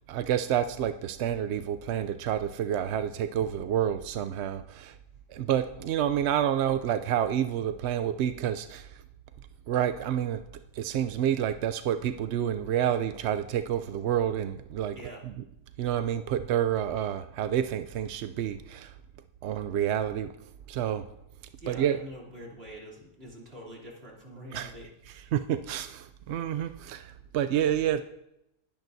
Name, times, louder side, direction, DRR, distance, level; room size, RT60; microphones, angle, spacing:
voice 1, 0.1-5.0 5.3-9.0 9.7-10.4 10.7-15.0 15.2-15.4 15.8-18.9 19.4-20.3 20.7-21.1 21.7-22.0 24.5-24.7 25.0-28.0, right 10 dB, 70° right, 10 dB, 0.6 m, -29 dB
voice 2, 21.6-25.3, equal, 40° right, -3 dB, 3.1 m, -45 dB
20.5 x 10.5 x 2.7 m, 0.83 s
omnidirectional pair, 1.6 m